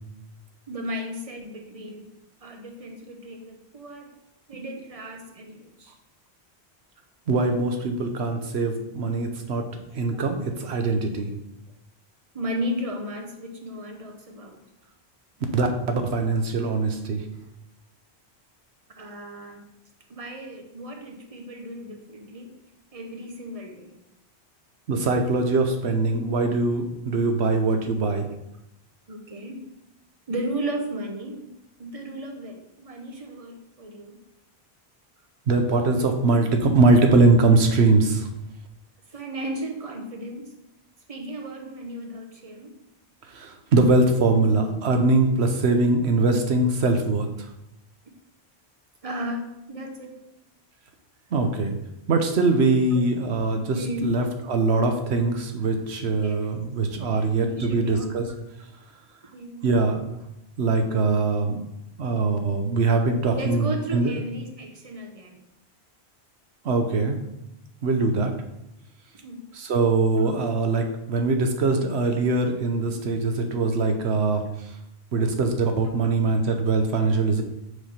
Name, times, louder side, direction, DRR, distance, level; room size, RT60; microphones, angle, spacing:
voice 1, 0.7-2.1 2.4-4.2 4.5-6.0 12.3-14.6 19.0-19.6 20.1-22.6 22.9-23.9 29.1-29.7 30.3-34.2 39.1-40.6 41.1-42.8 49.0-50.2 52.9-53.0 53.7-54.3 56.2-56.5 57.1-58.2 59.3-59.8 63.3-65.4 69.2-69.5 70.2-70.3, right 1 dB, 35° right, 3 dB, 0.9 m, -35 dB
voice 2, 7.3-9.7 9.9-11.3 15.5-17.2 24.9-28.3 35.5-38.3 43.3-47.5 51.3-51.7 52.1-58.3 59.6-60.0 60.6-61.6 62.0-64.2 66.6-67.2 67.8-68.3 69.5-74.7 75.1-77.4, right 3 dB, 80° right, 5 dB, 1.1 m, -22 dB
6.5 x 3.5 x 5.5 m, 0.86 s
omnidirectional pair, 1.1 m